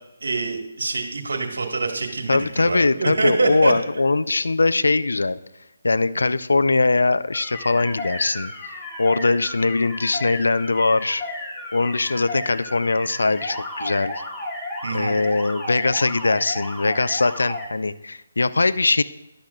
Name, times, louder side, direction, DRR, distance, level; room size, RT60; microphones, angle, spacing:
voice 1, 0.2-3.7 14.8-15.1, right 3 dB, 70° right, 3 dB, 1.7 m, -25 dB
voice 2, 2.3-5.4 5.8-8.5 9.0-11.2 11.7-14.2 14.9-19.0, left 3 dB, 80° left, 15 dB, 0.4 m, -21 dB
sound 1, 7.3-17.7, left 2 dB, 15° left, 1.5 m, -33 dB
13.0 x 10.5 x 2.4 m, 0.89 s
figure-of-eight pair, 150°, 0 cm